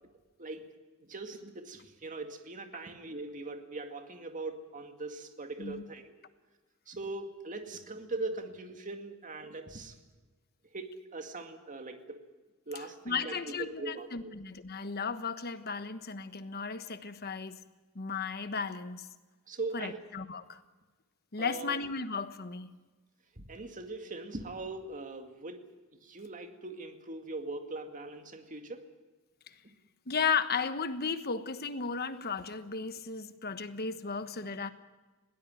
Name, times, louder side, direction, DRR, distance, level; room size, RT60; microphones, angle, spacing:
voice 1, 1.1-6.2 6.9-10.0 10.7-12.2 12.7-14.3 19.5-20.1 21.4-21.8 23.4-25.6 26.0-28.8 29.6-29.7, right 3 dB, 40° right, 6 dB, 2.2 m, -41 dB
voice 2, 13.1-17.6 17.9-19.1 19.7-20.6 21.3-22.7 30.1-34.7, left 5 dB, 50° left, 11 dB, 1.2 m, -35 dB
21.0 x 18.0 x 9.2 m, 1.2 s
head